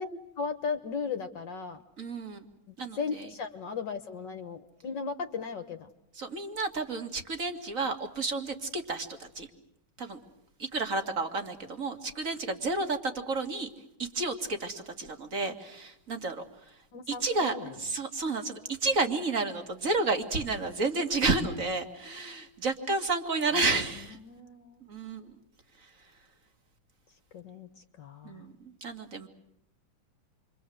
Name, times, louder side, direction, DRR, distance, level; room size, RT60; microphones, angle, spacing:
voice 1, 0.0-1.8 2.7-5.9 16.9-17.8 24.2-24.8 27.3-27.7 28.0-28.4, left 5 dB, 60° left, 7 dB, 1.9 m, -36 dB
voice 2, 2.0-2.4 2.8-3.3 6.1-9.5 10.0-10.2 10.6-13.7 14.0-16.8 17.1-17.5 17.8-24.2 24.9-25.3 28.2-29.3, right 3 dB, 40° right, 7 dB, 2.7 m, -31 dB
29.0 x 24.5 x 7.9 m, 0.76 s
omnidirectional pair, 2.2 m